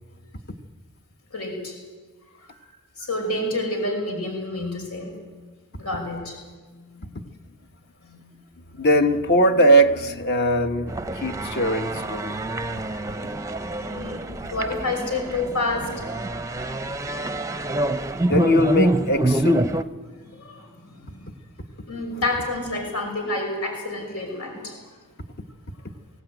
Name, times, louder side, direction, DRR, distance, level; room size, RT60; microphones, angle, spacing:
voice 1, 1.3-1.7 3.0-5.2 5.8-6.4 13.8-15.9 20.2-21.2 21.8-24.8, left 2 dB, 85° left, 5.7 m, -29 dB
voice 2, 6.9-7.4 8.1-8.3 8.7-12.4 18.3-19.7, equal, 45° left, 1.4 m, -21 dB
sound 1, 10.9-19.8, right 1 dB, 15° right, 0.6 m, -26 dB
23.0 x 17.0 x 9.2 m
head